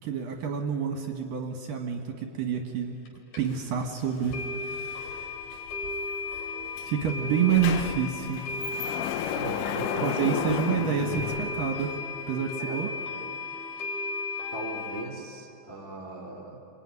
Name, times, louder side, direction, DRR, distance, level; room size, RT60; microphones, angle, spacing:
voice 1, 0.0-3.0 3.4-5.3 6.8-8.4 10.0-12.0 12.3-12.9, right 7 dB, 65° right, 3 dB, 2.7 m, -28 dB
sound 1, 3.0-3.1 3.3-3.4 3.8-3.9 4.3-15.0, left 3 dB, 45° left, 3.6 m, -35 dB
sound 2, 3.4-12.0, left 4 dB, 65° left, 2.9 m, -52 dB
Sliding door, 6.8-6.9 7.2-12.2, left 10 dB, 85° left, 1.9 m, -33 dB
voice 2, 9.3-10.9 12.6-12.9 14.5-16.6, right 3 dB, 10° left, 0 dB, 1.5 m, -38 dB
27.0 x 23.0 x 9.6 m, 2.9 s
omnidirectional pair, 5.1 m